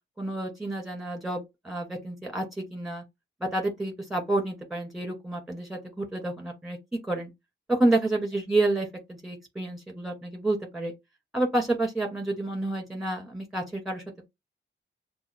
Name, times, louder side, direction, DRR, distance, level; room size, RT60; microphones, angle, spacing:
voice 1, 0.2-3.0 3.4-7.3 7.7-10.9 11.3-14.0, right 2 dB, ahead, 2.2 m, -29 dB
6.8 x 2.5 x 2.4 m
wide cardioid pair, 165°, 20 cm